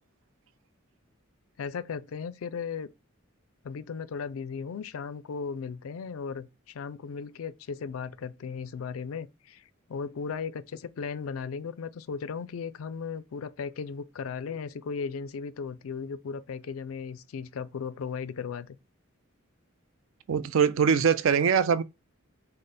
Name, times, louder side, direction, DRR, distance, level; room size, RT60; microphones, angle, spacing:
voice 1, 1.6-2.9 3.6-9.6 9.9-18.8, left 5 dB, 90° left, 0.4 m, -36 dB
voice 2, 20.3-21.8, right 7 dB, 70° right, 0.4 m, -22 dB
5.3 x 2.1 x 4.0 m
head